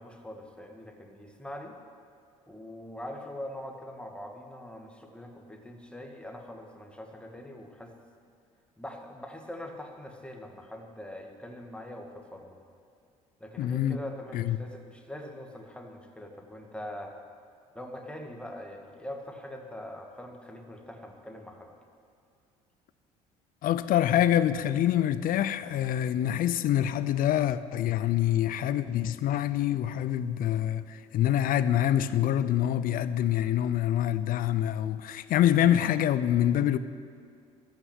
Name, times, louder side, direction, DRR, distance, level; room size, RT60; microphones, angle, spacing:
voice 1, 0.0-1.7 2.5-7.9 8.8-12.6 13.4-17.1 17.7-21.7, left 1 dB, 5° left, 2.0 m, -43 dB
voice 2, 13.6-14.0 14.3-14.6 23.6-36.8, left 11 dB, 55° left, 0.6 m, -26 dB
14.0 x 6.1 x 9.2 m
hypercardioid pair, 60°, 17 cm